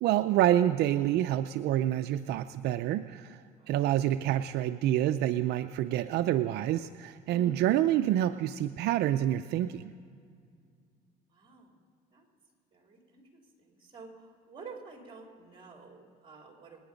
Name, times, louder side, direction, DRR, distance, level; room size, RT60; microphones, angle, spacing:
voice 1, 0.0-3.4 3.7-9.9, right 12 dB, 75° right, 10 dB, 0.5 m, -27 dB
voice 2, 3.5-3.9 7.3-7.7 11.3-11.8 12.1-12.3 12.7-16.8, right 3 dB, 30° right, 1 dB, 3.9 m, -49 dB
26.0 x 9.9 x 5.2 m, 2.2 s
cardioid pair, 110°, 17 cm